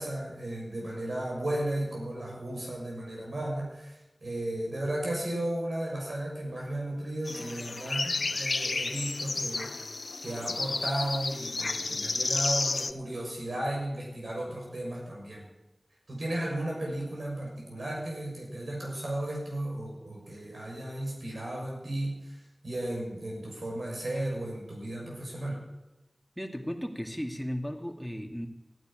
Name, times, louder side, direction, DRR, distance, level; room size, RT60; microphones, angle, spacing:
voice 1, 0.0-9.8 10.2-15.5 16.1-22.4 22.6-25.6, right 1 dB, 85° right, -2 dB, 6.5 m, -34 dB
sound 1, 7.3-12.9, left 3 dB, 80° left, 0.6 m, -31 dB
voice 2, 26.4-28.5, equal, ahead, 3 dB, 2.3 m, -35 dB
14.5 x 9.9 x 9.1 m, 1.0 s
wide cardioid pair, 45°, 0 cm